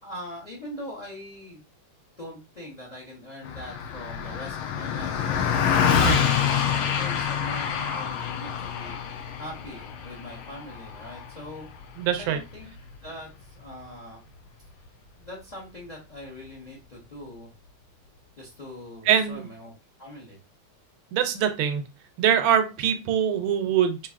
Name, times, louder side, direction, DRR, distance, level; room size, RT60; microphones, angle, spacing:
voice 1, 0.0-1.6 2.2-6.1 6.5-11.7 12.2-12.7 13.0-14.2 15.1-17.5 18.4-19.7 20.0-20.4, left 1 dB, 45° left, -2 dB, 0.5 m, -42 dB
Car passing by, 3.4-13.1, left 7 dB, 85° left, 1.5 m, -27 dB
voice 2, 12.0-12.4 19.1-19.5 21.1-21.8 22.2-24.1, right 9 dB, 75° right, 8 dB, 1.3 m, -23 dB
5.6 x 2.7 x 2.4 m, 0.28 s
omnidirectional pair, 2.3 m